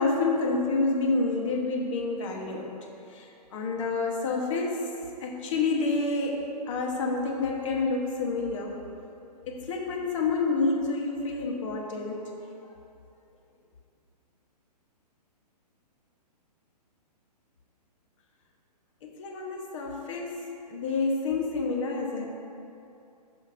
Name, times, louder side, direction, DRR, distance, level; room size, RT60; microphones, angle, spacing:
voice 1, 0.0-2.8 3.1-3.2 3.5-4.9 5.2-8.8 9.5-12.3 19.0-22.3, left 3 dB, 50° left, 0 dB, 1.2 m, -28 dB
14.0 x 5.1 x 2.6 m, 2.7 s
hypercardioid pair, 150°, 21 cm